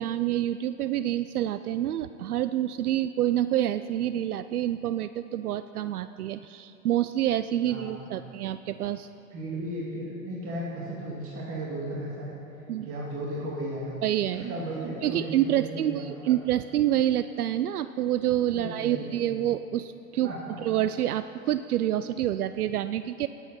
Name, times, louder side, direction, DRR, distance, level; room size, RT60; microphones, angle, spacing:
voice 1, 0.0-9.1 12.7-12.9 14.0-14.4 15.0-20.3 20.6-23.3, right 12 dB, 75° right, 12 dB, 0.5 m, -27 dB
voice 2, 7.7-8.3 9.3-12.4 12.8-14.0 14.3-16.3 18.5-19.3 20.2-20.6, right 1 dB, 30° right, -5 dB, 2.3 m, -35 dB
18.5 x 8.3 x 5.5 m, 2.8 s
figure-of-eight pair, 100°, 45 cm